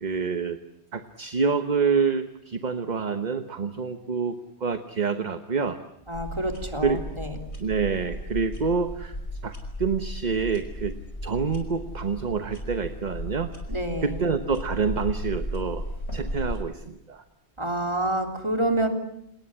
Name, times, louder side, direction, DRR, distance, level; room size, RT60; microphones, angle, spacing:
voice 1, 0.0-0.6 0.9-5.8 6.8-7.1 7.6-9.2 9.4-11.0 11.2-13.5 14.0-15.8 16.1-17.2, right 5 dB, 40° right, 9 dB, 1.2 m, -27 dB
sound 1, 6.1-16.6, equal, 75° left, 5.6 m, -35 dB
voice 2, 6.1-7.4 13.7-14.2 17.6-18.9, right 1 dB, 25° right, 4 dB, 3.4 m, -27 dB
30.0 x 19.5 x 8.7 m, 0.79 s
omnidirectional pair, 1.1 m